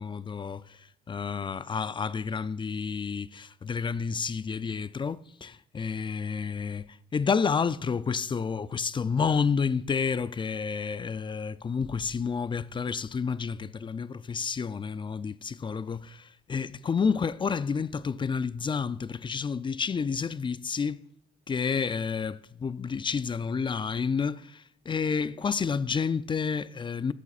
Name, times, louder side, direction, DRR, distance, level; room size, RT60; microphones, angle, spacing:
voice 1, 0.0-21.0 21.5-27.1, left 5 dB, 25° left, 0.4 m, -30 dB
13.5 x 7.1 x 2.4 m
cardioid pair, 90°, 20 cm